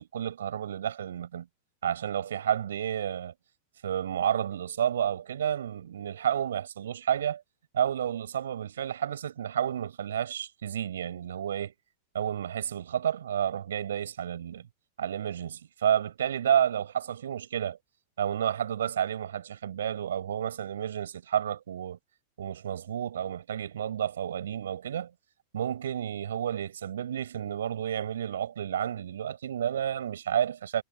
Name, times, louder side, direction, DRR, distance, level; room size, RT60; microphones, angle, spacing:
voice 1, 0.0-1.5 1.8-3.3 3.8-7.4 7.7-11.7 12.1-14.7 15.0-17.8 18.2-22.0 22.4-25.1 25.5-30.8, right 9 dB, 65° right, 7.9 m, -30 dB
figure-of-eight pair, 90°, 0 cm